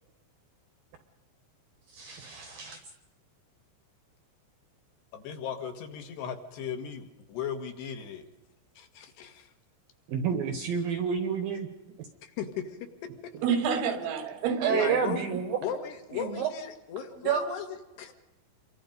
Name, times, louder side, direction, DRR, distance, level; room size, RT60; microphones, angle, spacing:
voice 1, 1.9-2.8 10.1-11.7 12.0-12.1 14.6-15.6 16.1-16.5 17.3-17.5, right 7 dB, 70° right, 8 dB, 2.3 m, -29 dB
voice 2, 5.1-8.3 8.8-9.5 12.2-12.8 14.7-15.2 15.6-18.1, left 8 dB, 65° left, 6 dB, 3.5 m, -37 dB
voice 3, 13.4-15.2, right 6 dB, 90° right, 8 dB, 4.9 m, -29 dB
29.0 x 23.5 x 5.3 m, 1.0 s
omnidirectional pair, 5.7 m